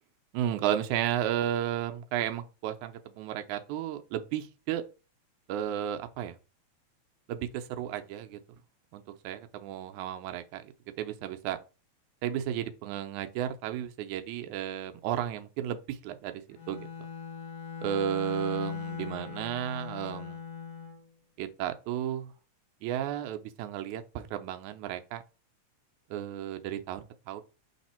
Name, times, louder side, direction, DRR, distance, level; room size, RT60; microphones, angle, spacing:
voice 1, 0.3-4.8 5.5-6.4 7.3-8.4 8.9-11.6 12.2-16.9 17.8-20.4 21.4-22.3 22.8-25.2 26.1-27.4, right 11 dB, 85° right, 2.1 m, -33 dB
Bowed string instrument, 16.5-21.0, left 7 dB, 90° left, 2.8 m, -39 dB
7.9 x 3.4 x 4.3 m
omnidirectional pair, 3.3 m